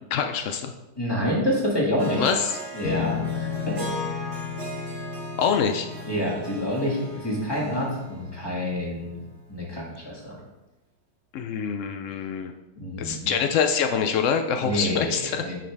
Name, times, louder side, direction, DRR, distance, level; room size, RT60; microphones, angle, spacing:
voice 1, 0.1-0.7 2.2-2.5 5.4-5.9 11.3-12.5 13.0-15.4, left 7 dB, 90° left, 6 dB, 0.6 m, -25 dB
voice 2, 1.0-2.2 2.7-3.8 6.1-9.2 9.5-10.4 12.8-13.3 14.6-15.6, equal, 15° left, -3 dB, 1.8 m, -27 dB
Harp, 2.0-9.2, right 1 dB, 65° right, 1.7 m, -38 dB
sound 1, 2.8-9.4, left 8 dB, 60° left, 1.1 m, -35 dB
9.4 x 5.1 x 3.4 m, 1.0 s
omnidirectional pair, 1.9 m